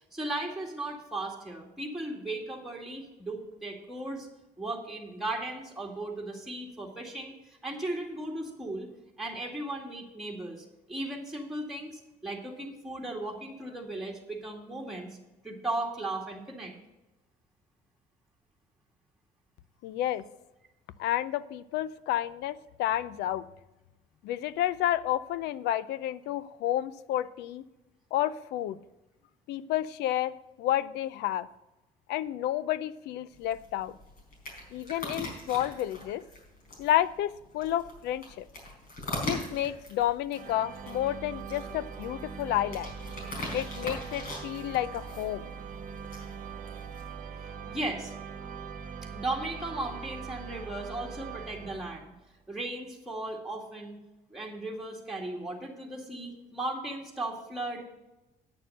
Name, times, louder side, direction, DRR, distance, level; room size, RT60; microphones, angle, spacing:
voice 1, 0.1-4.3 4.6-8.9 9.2-15.2 15.4-16.7 47.7-48.1 49.1-52.1 52.5-54.0 54.3-57.8, right 2 dB, ahead, -1 dB, 2.1 m, -36 dB
voice 2, 19.8-20.2 21.0-23.5 24.2-27.6 28.1-28.8 29.5-31.5 32.1-33.9 34.7-36.2 36.8-38.5 39.2-42.9 43.5-45.5, left 12 dB, 80° left, 18 dB, 0.5 m, -30 dB
sound 1, 33.3-47.1, left 2 dB, 60° left, 4.5 m, -42 dB
sound 2, 40.3-52.3, right 6 dB, 50° right, 1.2 m, -42 dB
9.4 x 6.7 x 6.5 m, 0.99 s
cardioid pair, 110°, 17 cm